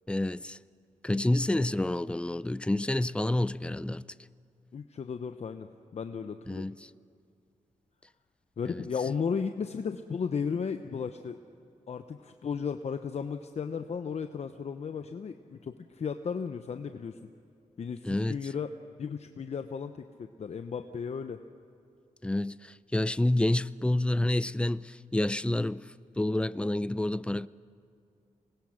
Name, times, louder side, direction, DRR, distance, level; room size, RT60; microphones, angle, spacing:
voice 1, 0.1-0.6 1.0-4.0 6.5-6.7 8.7-8.8 18.1-18.4 22.2-25.8 26.2-27.5, left 1 dB, 10° left, 0.4 m, -28 dB
voice 2, 4.7-6.7 8.6-11.4 11.9-17.2 17.8-18.7 19.0-21.4, left 6 dB, 55° left, 0.8 m, -35 dB
26.5 x 20.5 x 6.5 m
cardioid pair, 80°, 13 cm